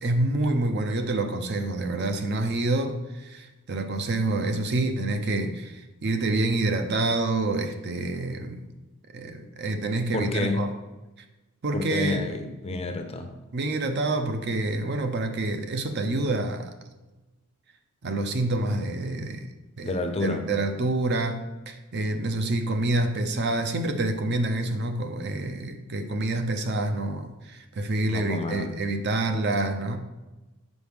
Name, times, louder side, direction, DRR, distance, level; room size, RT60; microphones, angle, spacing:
voice 1, 0.0-8.7 9.1-10.7 11.6-12.5 13.5-16.7 18.0-20.0 20.2-30.0, right 2 dB, 50° right, 6 dB, 0.6 m, -27 dB
voice 2, 10.1-10.7 11.7-13.3 19.8-20.5 28.1-28.7, left 2 dB, 30° left, 6 dB, 0.5 m, -29 dB
6.2 x 4.7 x 3.5 m, 1.1 s
head